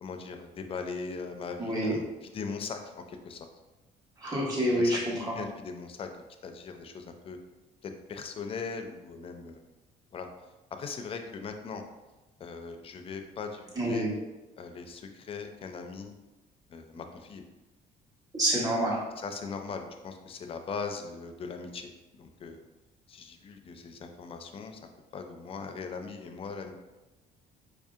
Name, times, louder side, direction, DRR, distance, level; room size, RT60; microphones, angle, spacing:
voice 1, 0.0-3.4 4.7-6.1 6.4-7.4 7.8-9.6 10.1-10.3 10.7-11.8 12.4-14.1 14.6-16.1 16.7-17.4 19.2-22.6 23.1-24.8 25.1-26.7, left 5 dB, 35° left, 5 dB, 0.4 m, -40 dB
voice 2, 1.6-1.9 4.2-5.3 13.8-14.1 18.3-19.0, right 1 dB, 20° right, -5 dB, 1.3 m, -27 dB
4.7 x 2.7 x 2.4 m, 1.1 s
cardioid pair, 110°, 17 cm